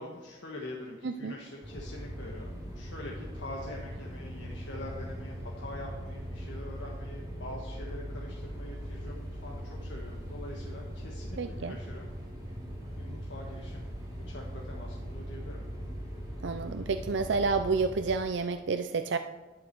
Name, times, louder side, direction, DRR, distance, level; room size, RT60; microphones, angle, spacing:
voice 1, 0.0-12.1 13.0-15.7, left 1 dB, 75° left, -2 dB, 1.5 m, -44 dB
voice 2, 1.0-1.3 11.4-11.8 16.4-19.2, right 4 dB, 80° right, 8 dB, 0.5 m, -30 dB
sound 1, 1.6-18.2, equal, 20° right, 3.2 m, -40 dB
11.0 x 11.0 x 4.6 m, 1.2 s
head